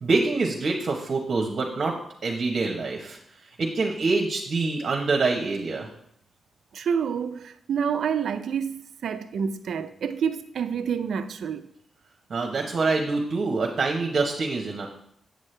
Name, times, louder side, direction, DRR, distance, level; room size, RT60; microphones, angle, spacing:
voice 1, 0.0-3.2 3.6-5.9 12.3-14.9, right 3 dB, 60° right, 1.0 m, -25 dB
voice 2, 6.7-11.7, right 7 dB, 80° right, 0.4 m, -28 dB
8.1 x 6.4 x 3.3 m
cardioid pair, 85°, 0 cm